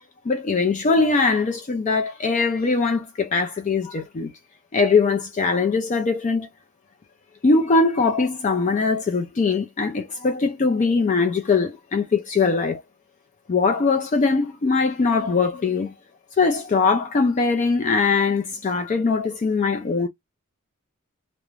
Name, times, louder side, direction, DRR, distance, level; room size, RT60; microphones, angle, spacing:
voice 1, 0.3-4.3 4.7-6.5 7.4-12.8 13.5-15.9 16.4-20.1, left 4 dB, 35° left, 0.3 m, -21 dB
2.4 x 2.1 x 2.9 m
head